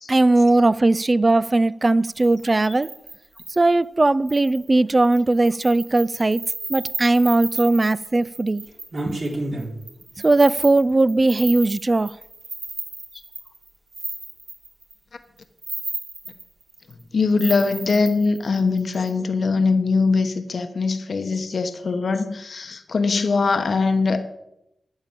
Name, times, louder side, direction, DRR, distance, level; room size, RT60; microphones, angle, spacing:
voice 1, 0.1-2.9 3.5-6.4 6.7-8.6 9.1-9.2 10.2-12.2, right 2 dB, 35° right, 0.4 m, -18 dB
sound 1, 2.2-3.6 4.3-4.7 5.0-14.9 15.4-17.0 17.4-19.1, right 2 dB, 55° right, 3.6 m, -33 dB
voice 2, 17.1-24.2, left 4 dB, 65° left, 0.9 m, -22 dB
9.6 x 8.2 x 7.5 m
cardioid pair, 65°, 0 cm